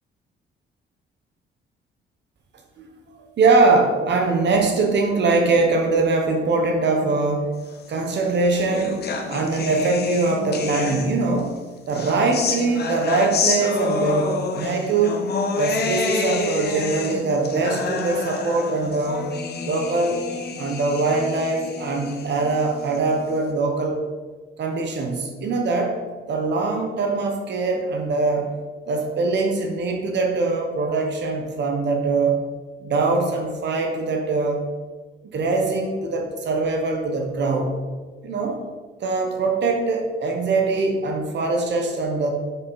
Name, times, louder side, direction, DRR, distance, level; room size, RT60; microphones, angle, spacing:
voice 1, 3.4-7.5 7.9-11.5 11.9-15.2 15.6-19.3 19.6-20.2 20.6-24.0 24.6-26.0 26.3-28.5 28.9-32.4 32.8-34.6 35.3-37.8 38.2-38.6 39.0-42.3, right 3 dB, 60° right, 3 dB, 1.2 m, -22 dB
sound 1, 8.0-11.4 11.9-23.4, left 4 dB, 55° left, 1.1 m, -28 dB
6.8 x 6.8 x 4.2 m, 1.4 s
cardioid pair, 90°, 20 cm